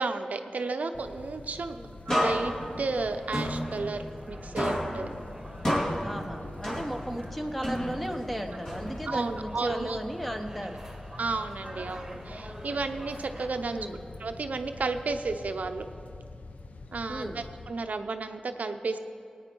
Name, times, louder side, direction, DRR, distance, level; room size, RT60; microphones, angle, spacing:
voice 1, 0.0-1.8 2.1-5.1 9.1-10.0 11.2-13.9 14.2-15.9 16.9-19.0, right 3 dB, 75° right, 7 dB, 0.6 m, -32 dB
sound 1, 0.9-17.7, left 3 dB, 65° left, 0.7 m, -45 dB
sound 2, 2.1-4.3 4.6-7.2 7.6-9.3, equal, 30° left, 2.4 m, -31 dB
sound 3, 2.3-13.5, right 1 dB, 10° right, 1.6 m, -47 dB
voice 2, 6.0-10.8 13.7-14.0 17.1-17.4, equal, 5° left, 5 dB, 0.9 m, -35 dB
19.0 x 9.1 x 4.5 m, 2.5 s
wide cardioid pair, 105°, 3 cm